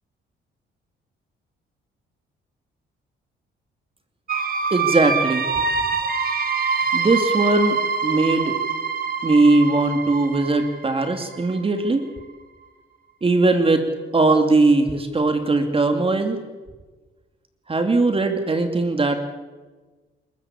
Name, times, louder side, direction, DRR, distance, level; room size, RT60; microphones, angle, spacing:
sound 1, 4.3-11.9, right 5 dB, 45° right, 2.5 m, -25 dB
voice 1, 4.7-5.4 6.9-7.8 8.0-8.6 9.2-12.0 13.2-13.8 14.1-16.4 17.7-19.2, right 3 dB, 30° right, 7 dB, 2.7 m, -19 dB
27.5 x 14.0 x 8.7 m, 1.3 s
cardioid pair, 90°, 20 cm